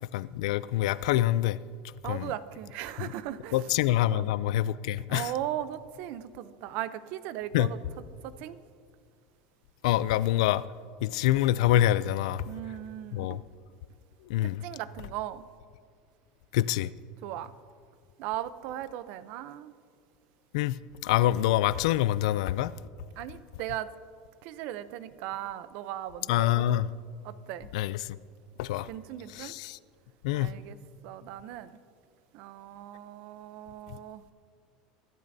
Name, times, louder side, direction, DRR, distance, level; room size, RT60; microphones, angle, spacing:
voice 1, 0.1-1.6 2.0-2.3 3.0-3.1 3.5-5.3 7.5-7.7 9.8-10.6 11.0-12.4 13.1-13.4 14.3-14.6 16.5-16.9 20.5-22.7 26.3-26.9 27.7-28.0 28.6-28.9 29.3-29.8 30.2-30.5, left 14 dB, 85° left, 0.4 m, -26 dB
voice 2, 2.0-3.7 4.1-4.3 5.1-7.8 8.2-8.6 12.5-13.4 14.4-15.4 17.2-17.5 18.2-19.7 23.2-23.9 24.4-26.8 27.2-27.7 28.9-29.5 30.3-30.8 31.0-31.7 32.3-34.2, right 12 dB, 55° right, 0.6 m, -38 dB
22.5 x 12.0 x 2.7 m
cardioid pair, 160°, 3 cm